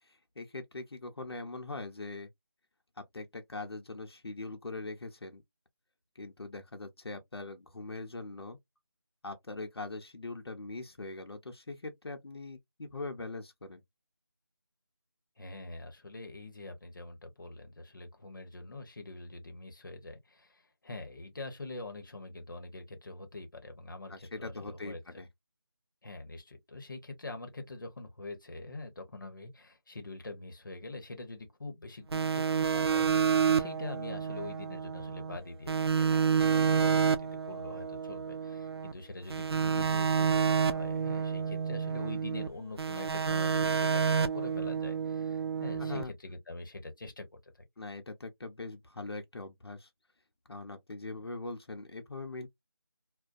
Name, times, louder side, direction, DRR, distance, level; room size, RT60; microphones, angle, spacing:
voice 1, 0.0-2.3 3.0-5.4 6.1-8.6 9.2-13.8 24.1-25.3 45.8-46.1 47.8-49.9 50.5-52.5, left 3 dB, 85° left, 0.7 m, -42 dB
voice 2, 15.4-25.0 26.0-47.5, left 2 dB, 55° left, 0.9 m, -44 dB
sound 1, 32.1-35.4 35.7-38.9 39.3-42.5 42.8-46.0, right 6 dB, 85° right, 0.4 m, -29 dB
2.6 x 2.1 x 2.4 m
figure-of-eight pair, 175°, 13 cm